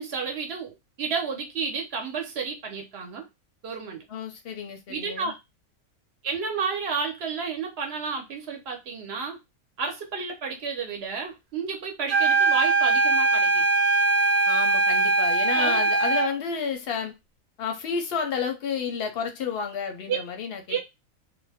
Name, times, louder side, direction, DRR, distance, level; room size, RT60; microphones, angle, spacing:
voice 1, 0.0-3.3 3.6-4.0 4.9-5.3 6.2-9.4 9.8-13.6 15.5-15.8 20.1-20.2 20.7-20.8, right 5 dB, 50° right, 0.9 m, -31 dB
voice 2, 4.1-5.3 14.5-17.1 17.6-20.8, left 6 dB, 55° left, 0.7 m, -31 dB
sound 1, 12.1-16.4, right 3 dB, 85° right, 1.2 m, -21 dB
2.5 x 2.2 x 3.4 m
omnidirectional pair, 1.5 m